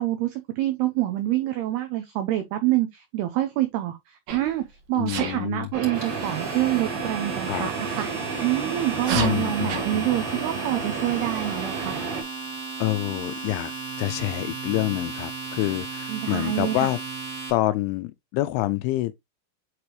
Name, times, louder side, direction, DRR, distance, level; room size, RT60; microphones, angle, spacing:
voice 1, 0.0-8.1 8.4-12.0 16.1-16.9, right 14 dB, 90° right, 2.2 m, -26 dB
Sneeze, 4.3-4.5 5.1-5.4 7.9-8.1 8.9-9.9, right 7 dB, 65° right, 2.0 m, -30 dB
voice 2, 5.0-5.7 7.5-7.7 9.1-10.1 12.8-13.7 14.0-17.0 17.5-19.1, left 17 dB, 85° left, 2.8 m, -27 dB
Domestic sounds home sounds, 5.6-17.5, right 4 dB, 20° right, 2.4 m, -35 dB
sound 1, 5.7-12.2, right 4 dB, 45° right, 4.0 m, -32 dB
8.1 x 4.9 x 2.9 m
omnidirectional pair, 5.8 m